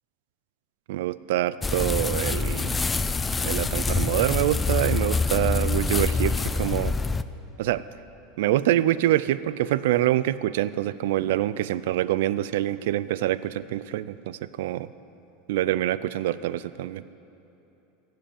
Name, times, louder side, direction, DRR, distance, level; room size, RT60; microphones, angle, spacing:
voice 1, 0.9-2.8 3.5-6.9 7.6-7.8 8.4-14.9 15.5-17.0, right 14 dB, 75° right, 16 dB, 0.4 m, -25 dB
sound 1, 1.6-7.2, left 4 dB, 10° left, 0.3 m, -25 dB
15.5 x 7.6 x 9.0 m, 3.0 s
supercardioid pair, 160°, 0 cm